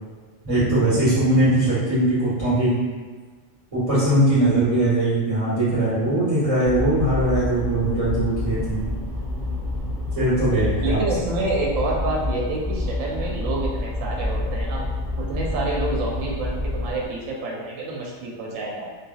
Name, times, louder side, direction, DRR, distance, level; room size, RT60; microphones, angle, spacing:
voice 1, 0.4-2.7 3.7-8.8 10.1-11.0, right 1 dB, 25° right, -12 dB, 1.6 m, -20 dB
sound 1, 6.6-17.1, left 1 dB, ahead, 0.6 m, -28 dB
voice 2, 10.8-14.9 15.2-18.9, right 2 dB, 85° right, -2 dB, 1.0 m, -28 dB
3.2 x 2.3 x 2.3 m, 1.4 s
omnidirectional pair, 1.4 m